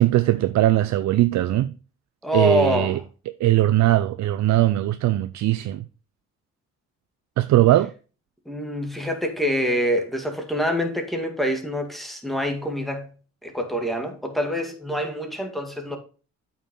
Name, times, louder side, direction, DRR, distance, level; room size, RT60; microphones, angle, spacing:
voice 1, 0.0-1.7 2.3-3.0 3.4-5.8 7.4-7.9, right 15 dB, 65° right, 0.5 m, -20 dB
voice 2, 2.2-3.0 8.5-13.1 13.4-16.0, equal, ahead, 2.2 m, -25 dB
8.5 x 5.9 x 3.8 m
cardioid pair, 90°, 30 cm